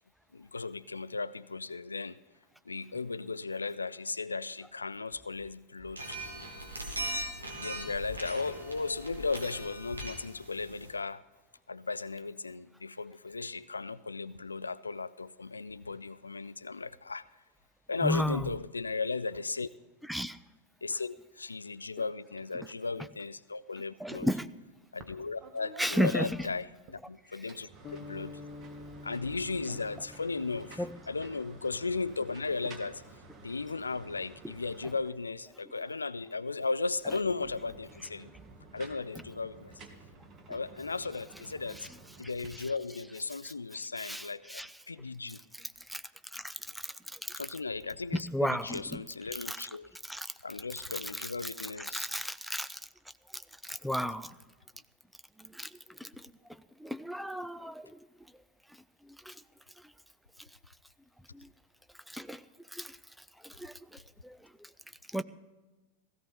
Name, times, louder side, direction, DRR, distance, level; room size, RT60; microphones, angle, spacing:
voice 1, 0.3-2.2 2.7-6.2 7.6-11.2 11.7-17.3 17.9-19.7 20.8-24.3 24.9-28.4 29.0-33.0 33.4-38.3 38.7-39.7 40.5-41.9 42.2-45.4 47.4-49.9 50.4-52.1, left 4 dB, 80° left, 18 dB, 0.4 m, -36 dB
sound 1, 6.0-10.9, right 1 dB, 80° right, 2.5 m, -40 dB
voice 2, 18.0-18.5 20.1-20.4 24.0-24.5 25.8-26.3 30.8-30.9 41.8-41.9 42.5-42.7 43.4-43.5 44.0-44.7 45.6-46.0 46.3-47.4 48.1-49.0 49.3-49.7 50.0-50.3 51.0-51.5 51.8-52.8 53.3-54.3 55.4-58.1 58.7-58.8 59.0-59.4 59.8-59.9 61.3-61.5 62.1-62.4 62.7-64.7 65.1-65.2, equal, ahead, 12 dB, 0.5 m, -35 dB
sound 2, 25.0-25.2 25.4-27.0 27.4-35.4 37.2-42.5, right 3 dB, 30° right, 1.8 m, -52 dB
sound 3, 27.8-32.1, left 3 dB, 30° left, 1.4 m, -49 dB
16.5 x 15.0 x 4.2 m, 1.2 s
figure-of-eight pair, 90°, 0 cm